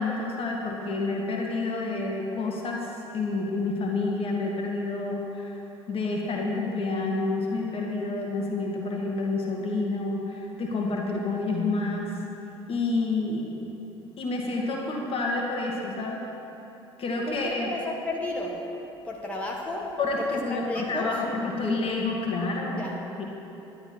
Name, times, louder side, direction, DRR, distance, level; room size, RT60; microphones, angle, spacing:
voice 1, 0.0-5.5 5.9-12.1 12.7-13.6 14.2-16.2 17.0-17.7 20.0-22.8 23.2-23.3, left 3 dB, 40° left, -1 dB, 1.9 m, -29 dB
voice 2, 17.3-18.6 19.1-19.9 20.5-21.1 22.8-22.9, left 2 dB, 10° left, -2 dB, 1.7 m, -33 dB
11.5 x 11.0 x 4.4 m, 3.0 s
figure-of-eight pair, 55°, 14 cm